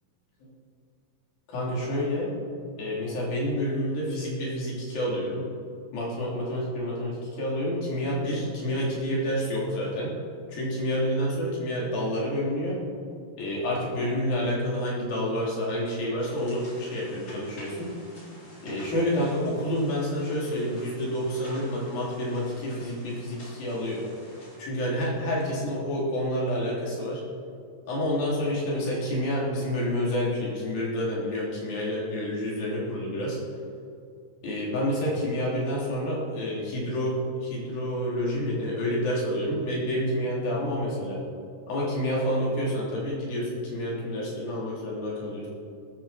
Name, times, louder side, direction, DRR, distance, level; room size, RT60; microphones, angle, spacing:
voice 1, 1.5-2.3 2.8-5.5 5.9-10.1 10.5-12.8 13.4-17.9 18.6-24.0 24.6-27.2 27.9-33.4 34.4-37.2 37.4-41.2 41.7-45.5, equal, 65° left, -5 dB, 5.4 m, -28 dB
sound 1, 16.2-24.6, equal, 30° left, 4.4 m, -48 dB
20.0 x 13.5 x 4.4 m, 2.3 s
omnidirectional pair, 4.5 m